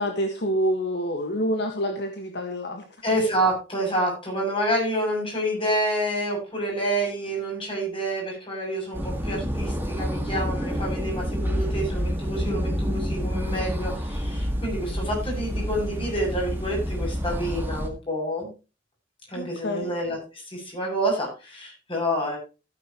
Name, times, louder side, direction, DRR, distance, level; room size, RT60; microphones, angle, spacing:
voice 1, 0.0-2.8 19.3-19.9, equal, 60° left, 4 dB, 1.7 m, -27 dB
voice 2, 3.0-18.5 19.3-22.4, right 1 dB, 30° left, -1 dB, 7.3 m, -28 dB
sound 1, 8.9-17.9, equal, 10° right, 1.9 m, -28 dB
16.0 x 9.2 x 3.0 m, 0.31 s
head